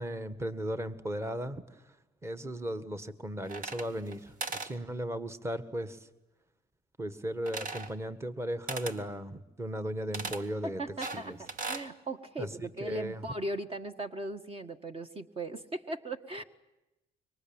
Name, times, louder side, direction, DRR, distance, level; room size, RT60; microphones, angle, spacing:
voice 1, 0.0-2.0 2.2-6.1 7.0-10.8 11.1-11.4 12.4-13.2, equal, 15° right, 12 dB, 1.6 m, -36 dB
sound 1, 3.4-4.1 4.4-4.7 7.5-7.9 8.7-9.0 10.1-10.4 11.0-11.9, right 3 dB, 55° right, 2.1 m, -38 dB
voice 2, 10.6-11.3 11.7-16.4, right 1 dB, 35° right, 7 dB, 1.6 m, -38 dB
26.0 x 24.0 x 8.9 m, 0.96 s
cardioid pair, 110°, 17 cm